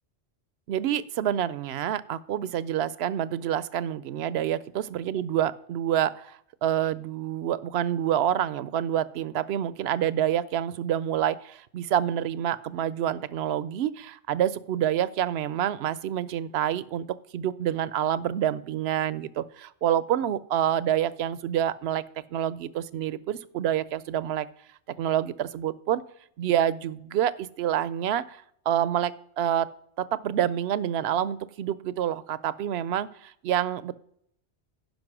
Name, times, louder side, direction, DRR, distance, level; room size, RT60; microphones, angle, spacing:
voice 1, 0.7-17.1 17.3-22.0 22.3-24.5 25.0-26.0 26.4-28.4 28.7-29.7 30.0-33.9, right 10 dB, 70° right, 18 dB, 0.8 m, -27 dB
10.5 x 5.7 x 6.0 m, 0.69 s
omnidirectional pair, 1.2 m